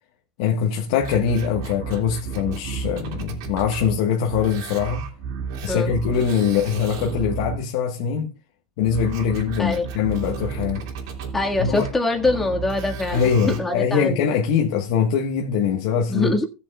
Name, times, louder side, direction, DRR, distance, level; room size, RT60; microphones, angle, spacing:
voice 1, 0.4-5.1 5.6-8.3 8.8-10.8 11.6-11.9 13.1-16.3, left 7 dB, 70° left, 1.3 m, -22 dB
sound 1, 1.0-4.0 4.3-7.6 8.8-13.6 14.3-14.4, right 6 dB, 80° right, 3.1 m, -33 dB
voice 2, 11.3-14.2 16.1-16.4, left 2 dB, 10° left, 1.7 m, -23 dB
18.5 x 7.1 x 2.3 m
supercardioid pair, 145°, 2 cm